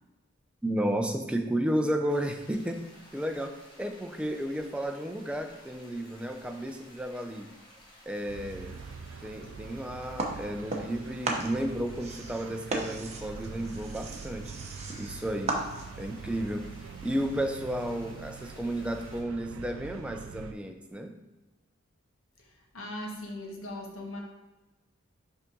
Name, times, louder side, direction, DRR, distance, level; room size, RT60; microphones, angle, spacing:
voice 1, 0.6-2.8 3.1-7.5 8.1-8.7 9.2-14.5 15.0-15.6 16.0-16.7 17.0-21.1, right 1 dB, 5° right, 4 dB, 0.4 m, -32 dB
sound 1, 2.1-19.2, left 1 dB, 25° left, 1.1 m, -55 dB
sound 2, 8.3-20.5, right 5 dB, 70° right, 0.4 m, -44 dB
sound 3, 10.2-11.0 11.2-16.1, right 2 dB, 30° right, 0.7 m, -35 dB
voice 2, 22.4-24.2, left 1 dB, 85° left, 0 dB, 1.3 m, -39 dB
5.5 x 3.6 x 5.2 m, 1.1 s
head